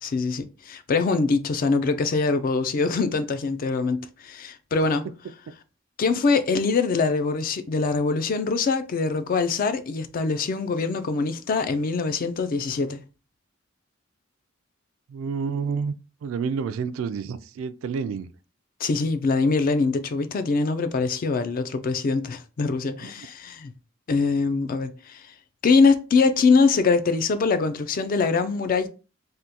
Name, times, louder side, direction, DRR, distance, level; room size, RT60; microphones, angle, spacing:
voice 1, 0.0-5.0 6.0-13.0 18.8-23.7 24.1-25.2 25.6-28.9, left 4 dB, 45° left, 0.3 m, -23 dB
voice 2, 15.1-15.9 16.2-18.3 23.0-23.1, right 5 dB, 70° right, 0.3 m, -29 dB
3.5 x 2.2 x 2.8 m
head